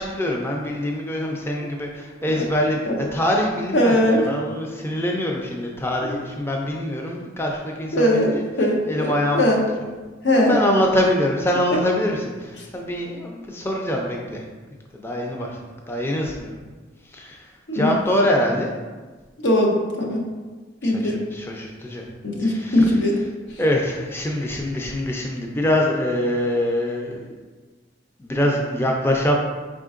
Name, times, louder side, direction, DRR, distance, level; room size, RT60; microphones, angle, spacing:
voice 1, 0.0-2.8 3.1-8.4 8.9-9.4 10.3-14.4 14.9-16.5 17.0-18.7 20.8-22.0 22.4-22.9 23.6-27.3 28.2-29.3, left 1 dB, 15° left, 0 dB, 0.4 m, -24 dB
voice 2, 3.7-4.3 6.0-6.1 7.9-9.6 10.2-10.6 17.7-17.9 19.4-20.2 20.8-21.2 22.2-23.2, left 1 dB, 75° left, 0 dB, 0.8 m, -20 dB
4.9 x 3.7 x 2.4 m, 1.3 s
head